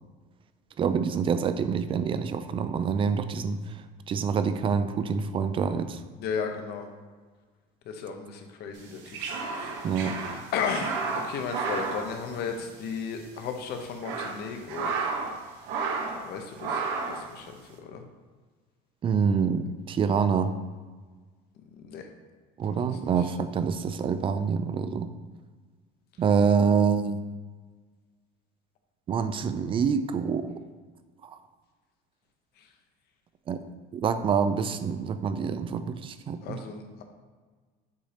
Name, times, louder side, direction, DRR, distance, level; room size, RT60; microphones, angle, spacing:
voice 1, 0.8-3.6 4.1-6.0 9.8-10.2 19.0-20.5 22.6-25.1 26.2-27.2 29.1-30.5 33.5-33.6 33.9-36.6, right 6 dB, 30° right, 11 dB, 0.3 m, -26 dB
voice 2, 6.2-6.9 7.9-10.0 10.5-14.9 16.2-18.0 21.7-22.1 22.6-23.1 32.6-32.7 36.4-37.0, left 6 dB, 55° left, 4 dB, 0.9 m, -35 dB
sound 1, 8.8-12.9 13.2-13.3 13.8-15.4 15.6-16.3 16.6-17.2, right 4 dB, 70° right, 0.9 m, -32 dB
7.1 x 2.8 x 5.0 m, 1.4 s
cardioid pair, 145°, 19 cm